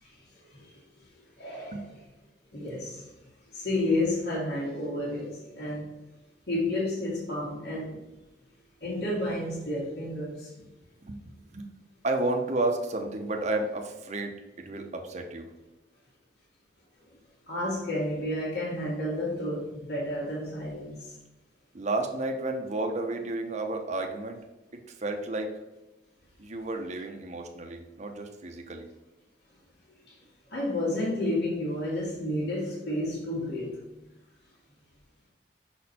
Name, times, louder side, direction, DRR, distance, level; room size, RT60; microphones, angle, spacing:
voice 1, 0.0-1.1 1.4-2.0 2.5-3.1 3.5-5.9 6.5-8.0 8.8-10.5 17.5-21.1 30.1-30.2 30.5-33.8, left 1 dB, 65° left, -7 dB, 2.0 m, -31 dB
voice 2, 11.0-11.7 12.0-15.5 21.7-24.4 25.0-25.5 26.4-28.9, right 2 dB, 40° right, 3 dB, 0.8 m, -32 dB
6.2 x 4.3 x 4.2 m, 1.0 s
head